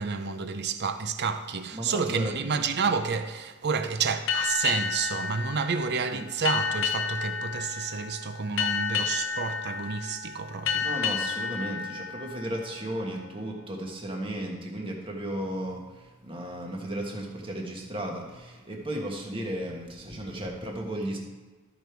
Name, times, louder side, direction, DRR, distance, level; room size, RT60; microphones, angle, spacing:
voice 1, 0.0-10.9, right 5 dB, 50° right, 0.6 m, -30 dB
voice 2, 1.7-2.3 6.1-6.3 10.8-21.2, right 1 dB, 25° right, 1.5 m, -34 dB
sound 1, 4.3-13.4, left 6 dB, 60° left, 1.0 m, -31 dB
13.0 x 5.1 x 4.6 m
head